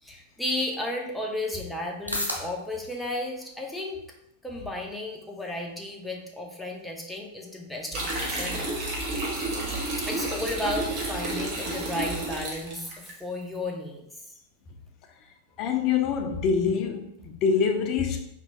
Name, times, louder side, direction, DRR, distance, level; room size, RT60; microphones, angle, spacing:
voice 1, 0.0-4.0 4.4-8.6 10.0-14.0, left 1 dB, 5° left, 0 dB, 0.7 m, -33 dB
sound 1, 1.5-17.6, equal, 90° left, 0.9 m, -45 dB
sound 2, 7.9-13.1, right 2 dB, 40° right, 1.1 m, -31 dB
voice 2, 15.6-18.3, left 6 dB, 40° left, 5 dB, 0.5 m, -25 dB
4.5 x 2.9 x 2.7 m, 0.77 s
figure-of-eight pair, 90°, 0 cm